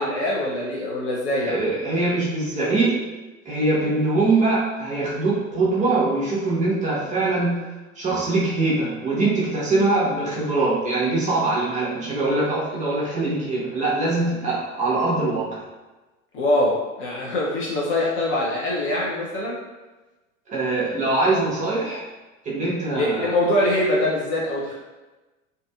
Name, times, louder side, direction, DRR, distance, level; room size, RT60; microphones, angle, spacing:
voice 1, 0.0-1.6 16.3-19.6 22.9-24.7, left 1 dB, 30° left, -5 dB, 0.6 m, -23 dB
voice 2, 1.4-3.0 3.5-7.6 8.0-15.6 20.5-22.0 22.4-23.3, right 2 dB, 20° right, -7 dB, 0.7 m, -23 dB
2.6 x 2.5 x 2.3 m, 1.1 s
figure-of-eight pair, 80°, 40 cm